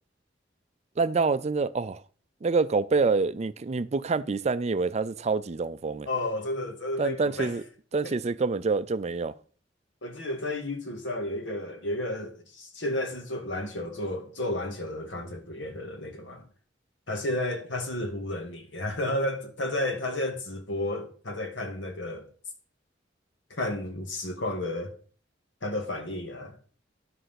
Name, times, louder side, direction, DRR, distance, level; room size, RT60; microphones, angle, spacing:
voice 1, 1.0-2.0 2.4-6.1 7.0-7.6 7.9-9.3, right 4 dB, 35° right, 0.4 m, -26 dB
voice 2, 6.1-7.5 8.0-8.1 10.0-16.5 17.1-22.3 23.5-24.9 25.6-26.6, left 1 dB, 90° left, 2.0 m, -32 dB
11.0 x 5.5 x 5.8 m
head